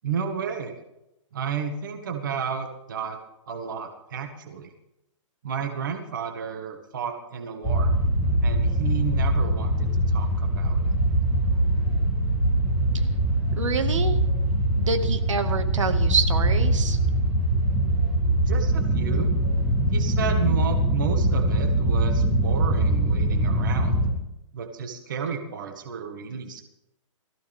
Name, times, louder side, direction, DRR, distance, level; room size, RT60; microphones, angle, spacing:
voice 1, 0.0-0.8 1.3-3.2 3.5-4.7 5.4-7.9 8.4-10.9 18.4-19.3 19.9-23.9 24.5-26.6, right 6 dB, 40° right, 5 dB, 1.7 m, -32 dB
sound 1, 7.6-24.1, right 1 dB, 5° right, 2.6 m, -23 dB
voice 2, 13.6-14.2 14.7-17.0, right 5 dB, 70° right, 7 dB, 1.9 m, -27 dB
21.5 x 15.0 x 3.6 m, 0.87 s
hypercardioid pair, 180°, 17 cm